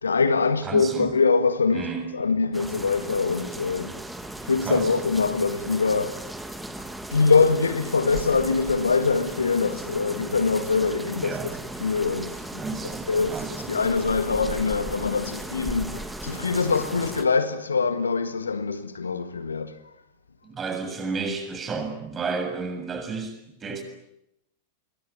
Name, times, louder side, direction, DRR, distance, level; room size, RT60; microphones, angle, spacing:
voice 1, 0.0-1.9 2.1-4.0 4.4-6.2 7.1-11.5 11.8-19.8, left 4 dB, 75° left, 1.8 m, -24 dB
voice 2, 0.6-1.1 1.7-2.1 4.6-5.0 11.2-11.5 12.6-13.7 20.4-23.8, right 4 dB, 20° right, 7.2 m, -32 dB
sound 1, 2.5-17.2, right 1 dB, 5° right, 2.6 m, -37 dB
27.0 x 23.0 x 9.1 m
figure-of-eight pair, 90°, 0 cm